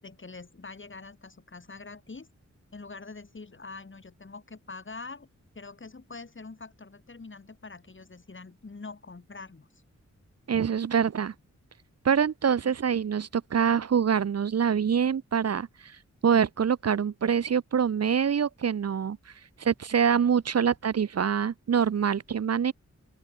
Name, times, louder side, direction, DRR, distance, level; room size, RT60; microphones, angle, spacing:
voice 1, 0.0-2.3 2.7-5.3 5.6-9.7 12.6-12.7, left 3 dB, 40° left, 5.1 m, -44 dB
voice 2, 10.5-11.3 12.0-15.9 16.2-19.2 19.6-22.7, right 7 dB, 60° right, 0.8 m, -25 dB
open air
wide cardioid pair, 80°, 29 cm